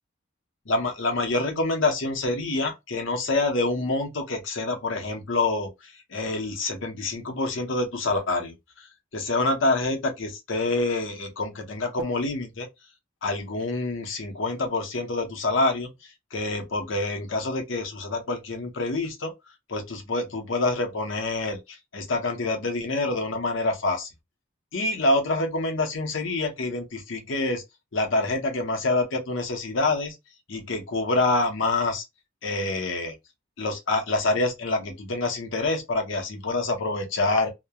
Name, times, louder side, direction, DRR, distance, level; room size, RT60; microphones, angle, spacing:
voice 1, 0.7-8.9 9.1-12.7 13.2-19.3 19.7-24.1 24.7-27.6 27.9-30.2 30.5-32.0 32.4-33.1 33.6-37.5, left 2 dB, 75° left, 0.8 m, -27 dB
2.9 x 2.1 x 2.2 m
head